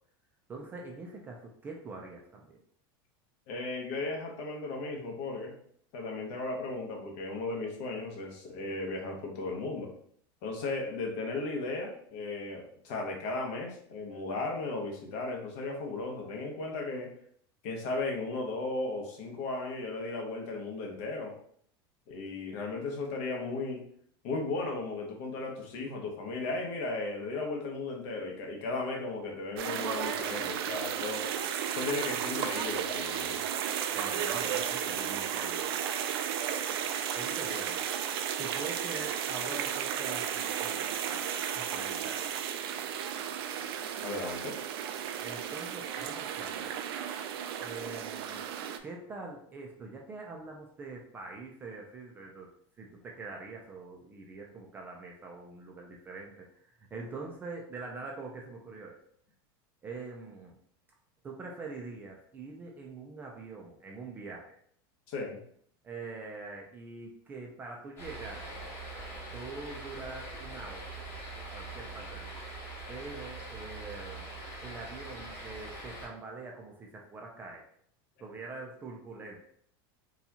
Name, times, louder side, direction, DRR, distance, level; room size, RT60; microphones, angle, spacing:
voice 1, 0.5-2.6 33.9-35.8 37.1-37.8 38.4-42.4 45.2-46.8 47.6-48.4 48.8-52.5 52.8-59.0 59.8-60.6 61.2-64.6 65.8-68.4 69.3-71.0 71.5-72.4 72.9-74.3 74.6-77.7 78.2-79.4, right 3 dB, 15° right, 0 dB, 0.4 m, -44 dB
voice 2, 3.5-5.5 5.9-9.9 10.4-17.1 17.6-21.3 22.1-23.8 24.2-31.3 31.7-33.4 44.0-44.5 65.1-65.4, left 3 dB, 55° left, 1 dB, 0.9 m, -36 dB
sound 1, 29.6-48.8, right 9 dB, 90° right, 0.4 m, -34 dB
sound 2, 68.0-76.1, right 2 dB, 20° left, 1.1 m, -43 dB
4.1 x 2.3 x 2.7 m, 0.63 s
supercardioid pair, 165°, 12 cm